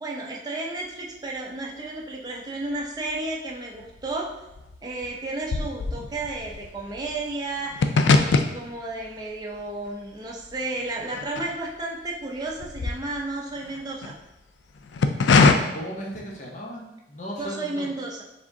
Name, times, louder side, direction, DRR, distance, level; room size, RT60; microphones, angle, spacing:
voice 1, 0.0-4.3 4.8-14.1 17.4-18.2, right 2 dB, 20° right, -2 dB, 0.5 m, -32 dB
sound 1, 2.7-3.5 3.7-12.1 12.4-14.1 14.7-15.5, left 4 dB, 85° left, 0.4 m, -24 dB
voice 2, 15.7-17.9, equal, 40° left, -3 dB, 0.8 m, -36 dB
4.8 x 3.5 x 2.7 m, 0.96 s
head